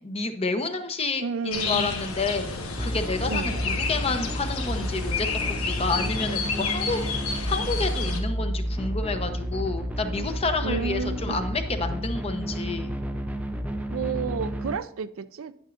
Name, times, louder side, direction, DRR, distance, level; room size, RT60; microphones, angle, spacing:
voice 1, 0.0-5.3 5.6-12.9, left 3 dB, 30° left, 0.7 m, -29 dB
voice 2, 1.2-1.9 3.3-3.5 10.6-11.5 13.9-15.5, right 5 dB, 70° right, 0.4 m, -31 dB
sound 1, 1.5-8.2, left 4 dB, 85° left, 1.3 m, -31 dB
sound 2, 2.8-14.8, equal, 5° right, 0.4 m, -31 dB
9.5 x 8.9 x 2.5 m
head